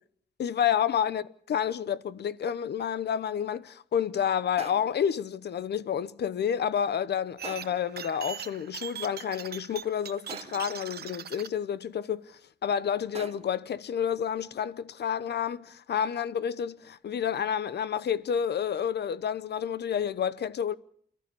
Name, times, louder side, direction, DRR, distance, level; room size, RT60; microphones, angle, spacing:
voice 1, 0.4-1.2 1.5-20.7, left 8 dB, 80° left, 0.9 m, -29 dB
sound 1, 4.6-5.1 7.4-7.9 10.3-10.8 13.1-13.7, right 5 dB, 35° right, 1.1 m, -44 dB
sound 2, 7.4-11.5, right 8 dB, 70° right, 0.9 m, -41 dB
28.5 x 13.5 x 8.4 m
wide cardioid pair, 135°, 17 cm